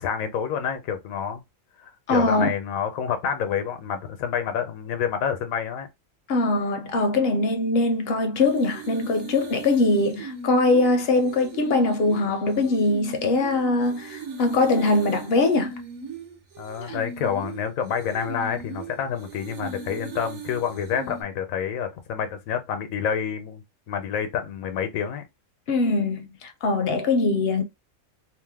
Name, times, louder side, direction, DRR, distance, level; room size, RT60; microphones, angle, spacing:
voice 1, 0.0-1.4 1.8-5.9 16.6-25.2, left 7 dB, 85° left, 1.1 m, -28 dB
voice 2, 2.1-2.5 6.3-15.8 16.8-17.0 25.7-27.6, left 2 dB, 65° left, 0.6 m, -22 dB
sound 1, 8.4-21.2, right 5 dB, 75° right, 1.2 m, -39 dB
2.9 x 2.0 x 3.3 m
omnidirectional pair, 1.4 m